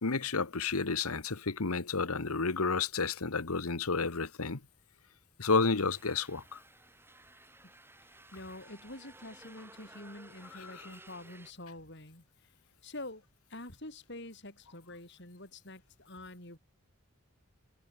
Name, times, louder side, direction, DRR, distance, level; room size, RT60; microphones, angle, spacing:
voice 1, 0.0-4.6 5.4-6.6 10.6-10.7, left 4 dB, 90° left, 1.4 m, -31 dB
sound 1, 5.5-11.5, right 2 dB, 10° right, 7.7 m, -56 dB
voice 2, 8.3-12.5 12.8-13.2 13.5-16.6, left 2 dB, 50° left, 5.8 m, -47 dB
head